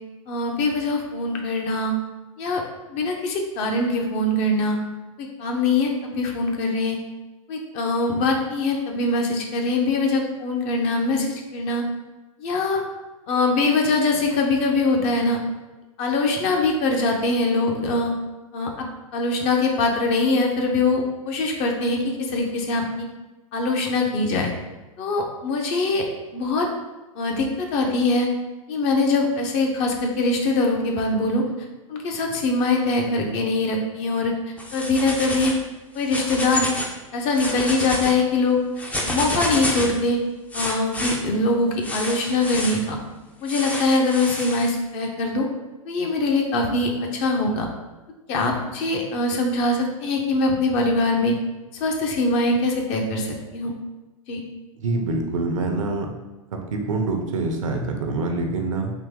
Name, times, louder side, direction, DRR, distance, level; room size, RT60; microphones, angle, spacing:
voice 1, 0.3-1.9 2.4-2.6 2.9-4.8 5.2-7.0 7.5-11.8 12.4-12.8 13.3-15.4 16.0-18.1 18.5-18.9 19.1-23.1 23.5-24.5 25.0-26.0 26.3-26.7 27.2-28.3 28.7-31.4 31.9-34.3 34.7-35.5 35.9-36.7 37.1-38.6 39.0-40.2 40.5-43.0 43.4-45.5 45.9-47.6 48.3-51.3 51.8-53.7 54.3-54.4, left 2 dB, 40° left, 1 dB, 0.8 m, -22 dB
sound 1, 34.6-35.6 36.0-36.9 37.3-38.1 38.8-40.0 40.5-41.2 41.8-42.8 43.5-44.7, left 1 dB, 10° left, 0.5 m, -29 dB
voice 2, 54.8-56.1 56.7-58.9, right 3 dB, 70° right, 3 dB, 0.7 m, -25 dB
3.9 x 2.7 x 3.6 m, 1.1 s
hypercardioid pair, 105°, 18 cm